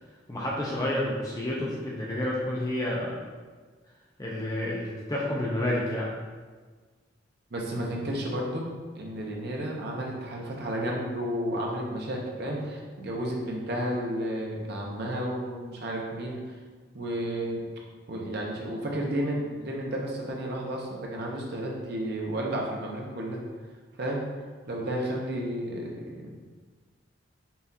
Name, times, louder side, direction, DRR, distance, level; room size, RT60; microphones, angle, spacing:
voice 1, 0.3-3.2 4.2-6.1, left 1 dB, 20° left, -4 dB, 0.4 m, -29 dB
voice 2, 7.5-8.7 8.9-16.6 16.9-17.6 18.1-23.4 24.0-24.2 24.6-26.5, right 1 dB, 55° right, -1 dB, 0.6 m, -32 dB
5.5 x 2.4 x 2.7 m, 1.4 s
head